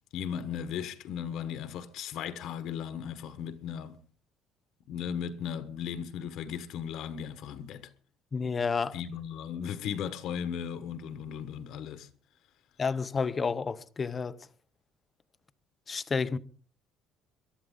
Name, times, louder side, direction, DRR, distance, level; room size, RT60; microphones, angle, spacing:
voice 1, 0.1-4.0 4.9-7.9 8.9-12.1, left 8 dB, 55° left, 1.2 m, -36 dB
voice 2, 8.3-9.0 12.8-14.4 15.9-16.4, left 5 dB, 20° left, 0.6 m, -30 dB
22.5 x 12.5 x 3.7 m
cardioid pair, 170°, 0 cm